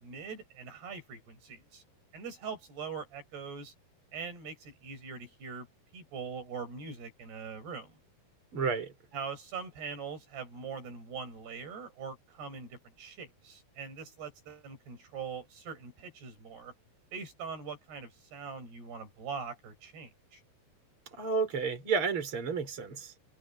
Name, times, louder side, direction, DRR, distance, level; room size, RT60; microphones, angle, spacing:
voice 1, 0.0-1.8 2.1-3.7 4.1-5.7 5.9-8.0 9.1-16.7 17.1-20.4, right 5 dB, 80° right, 9.5 m, -42 dB
voice 2, 8.5-8.9 21.1-23.1, right 5 dB, 30° right, 6.0 m, -31 dB
omnidirectional pair, 4.6 m